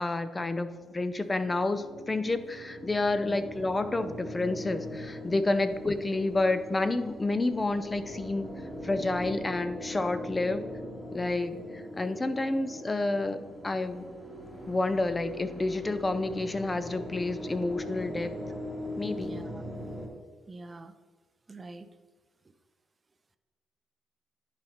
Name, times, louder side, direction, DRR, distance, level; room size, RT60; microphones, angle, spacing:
voice 1, 0.0-8.5 8.8-10.7 11.1-11.5 12.0-13.4 13.6-14.1 14.7-18.3 19.0-19.3, left 2 dB, 20° left, 12 dB, 0.5 m, -29 dB
sound 1, 0.7-20.1, left 1 dB, ahead, 1.6 m, -41 dB
voice 2, 19.2-19.6 20.5-20.9 21.5-21.9, right 2 dB, 25° right, 10 dB, 0.5 m, -45 dB
10.5 x 4.2 x 4.3 m, 1.4 s
cardioid pair, 90°, 0 cm